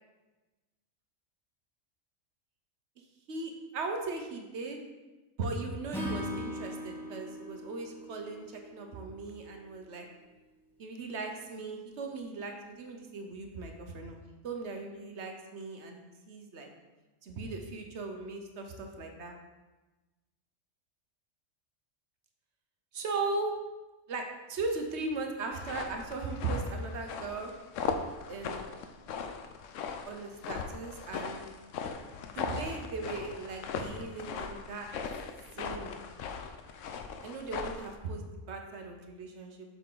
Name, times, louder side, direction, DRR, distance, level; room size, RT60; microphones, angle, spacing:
voice 1, 3.3-4.8 5.4-10.1 10.8-14.2 14.4-16.7 17.2-19.3 22.9-23.5 24.1-24.2 24.5-27.5 28.3-28.6 30.0-31.4 32.2-34.9 35.6-36.0 37.2-39.7, right 3 dB, 65° right, 3 dB, 1.1 m, -38 dB
Acoustic guitar / Strum, 5.9-9.2, left 1 dB, ahead, 0.9 m, -39 dB
sound 1, 25.5-37.9, left 6 dB, 80° left, 0.9 m, -39 dB
7.1 x 5.5 x 3.9 m, 1.1 s
omnidirectional pair, 1.3 m